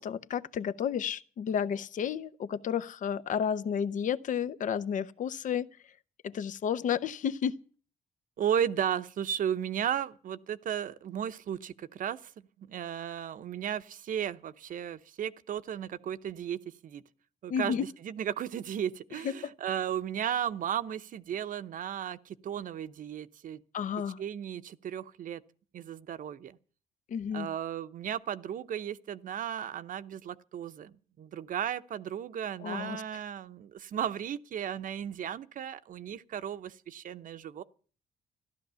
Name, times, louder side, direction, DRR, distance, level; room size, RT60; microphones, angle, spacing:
voice 1, 0.0-5.7 6.2-7.5 17.5-17.8 19.2-19.5 23.7-24.2 27.1-27.5 32.6-33.0, left 8 dB, 55° left, 0.7 m, -31 dB
voice 2, 8.4-12.2 12.6-17.0 17.4-23.6 24.2-25.4 25.7-26.6 27.3-37.6, right 9 dB, 60° right, 0.8 m, -35 dB
14.5 x 12.5 x 6.9 m
cardioid pair, 130°, 15 cm